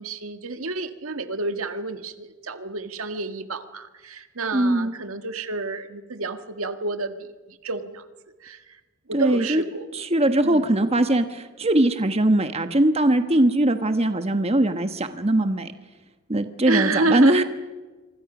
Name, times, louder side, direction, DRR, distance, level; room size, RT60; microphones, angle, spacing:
voice 1, 0.0-8.1 8.4-8.8 9.1-9.9 10.4-10.7 16.7-17.4, right 3 dB, 90° right, 8 dB, 1.8 m, -29 dB
voice 2, 4.5-4.9 9.1-9.6 9.9-15.7 16.3-17.4, right 1 dB, 30° right, 8 dB, 1.3 m, -21 dB
26.5 x 25.0 x 6.1 m, 1.3 s
head